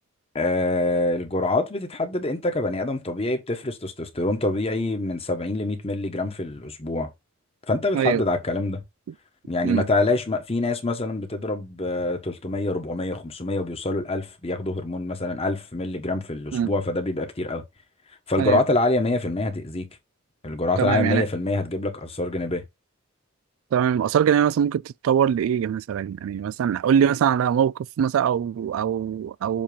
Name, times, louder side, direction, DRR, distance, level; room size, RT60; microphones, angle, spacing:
voice 1, 0.3-7.1 7.7-8.8 9.4-17.6 18.3-19.9 20.4-22.6, left 2 dB, 30° left, 1.2 m, -25 dB
voice 2, 20.8-21.2 23.7-29.6, right 8 dB, 80° right, 0.3 m, -22 dB
7.3 x 2.9 x 5.1 m
head